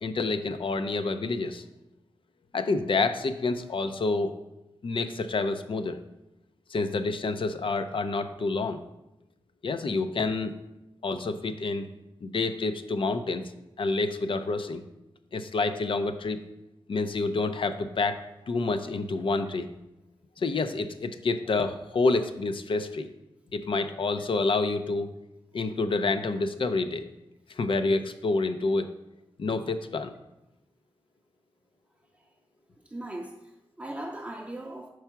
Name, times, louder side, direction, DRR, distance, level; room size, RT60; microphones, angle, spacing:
voice 1, 0.0-1.6 2.5-4.3 4.8-6.0 6.7-8.8 9.6-10.5 11.0-11.9 12.2-13.4 13.8-14.8 15.3-16.4 16.9-18.2 18.5-19.7 20.4-23.1 23.5-25.1 25.5-27.0 27.6-28.9 29.4-30.1, left 3 dB, 60° left, 8 dB, 0.5 m, -28 dB
voice 2, 32.8-34.9, right 1 dB, 15° right, 0 dB, 0.5 m, -39 dB
4.7 x 4.4 x 5.8 m, 0.94 s
wide cardioid pair, 80°, 10 cm